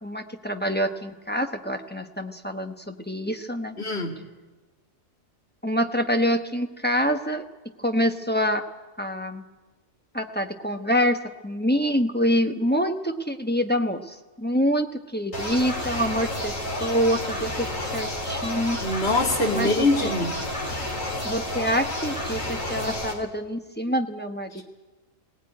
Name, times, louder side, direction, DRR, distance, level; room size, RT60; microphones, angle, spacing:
voice 1, 0.0-3.7 5.6-7.4 7.8-8.6 9.0-9.4 10.1-11.2 11.4-17.7 17.9-18.8 19.5-20.1 21.2-24.6, equal, 10° left, 4 dB, 1.0 m, -26 dB
voice 2, 3.8-4.1 18.8-20.3, left 2 dB, 50° left, 1 dB, 2.7 m, -23 dB
sound 1, 15.3-23.1, left 1 dB, 70° left, 4.3 m, -30 dB
20.0 x 18.0 x 9.6 m, 1.2 s
omnidirectional pair, 1.4 m